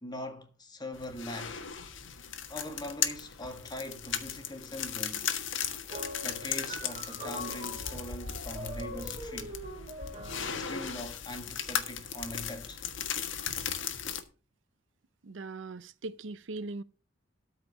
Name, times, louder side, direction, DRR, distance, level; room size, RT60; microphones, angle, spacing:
voice 1, 0.0-1.6 2.5-5.3 6.2-9.6 10.4-12.8, left 1 dB, 20° left, 1.8 m, -42 dB
sound 1, 0.9-14.2, left 8 dB, 85° left, 1.5 m, -37 dB
sound 2, 5.9-11.1, equal, 30° right, 3.2 m, -43 dB
voice 2, 15.2-16.8, right 3 dB, 75° right, 0.6 m, -40 dB
13.0 x 5.1 x 6.4 m
head